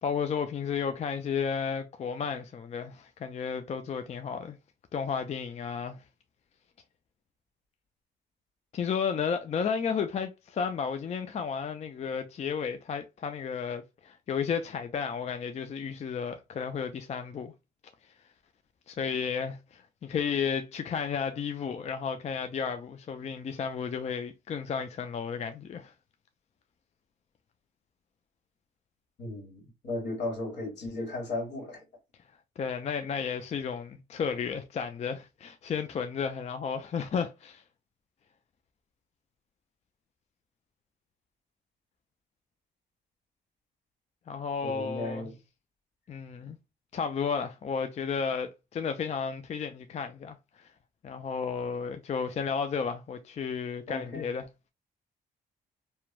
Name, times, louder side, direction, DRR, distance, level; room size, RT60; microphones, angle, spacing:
voice 1, 0.0-4.6 4.9-6.0 8.7-17.5 18.9-25.9 32.6-37.6 44.3-45.3 46.1-46.6 46.9-50.7 51.0-54.5, left 6 dB, 35° left, 0.3 m, -33 dB
voice 2, 29.2-31.8 44.6-45.4 53.9-54.3, left 2 dB, 70° left, 1.5 m, -35 dB
2.9 x 2.1 x 2.2 m
supercardioid pair, 65°, 18 cm